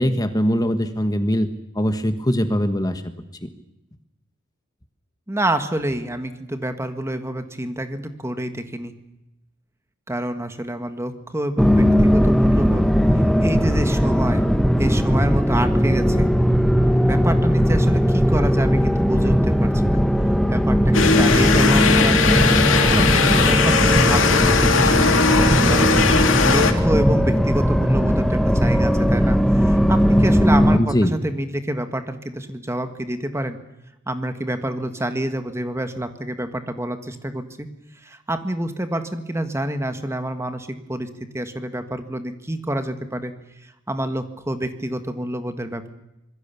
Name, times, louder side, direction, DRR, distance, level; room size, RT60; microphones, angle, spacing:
voice 1, 0.0-1.5 1.7-3.0 3.4-3.5 30.8-31.1, equal, 20° left, 8 dB, 1.4 m, -21 dB
voice 2, 5.3-8.9 10.1-12.8 13.4-14.4 14.8-16.3 17.0-20.0 20.5-22.5 22.9-25.9 26.4-33.6 34.1-37.7 38.0-41.1 41.3-43.3 43.9-45.9, right 1 dB, 15° right, 8 dB, 1.7 m, -27 dB
sound 1, 11.6-30.8, equal, ahead, 1.0 m, -18 dB
sound 2, 20.9-26.7, left 4 dB, 75° left, 2.7 m, -18 dB
26.0 x 21.5 x 7.0 m, 0.91 s
head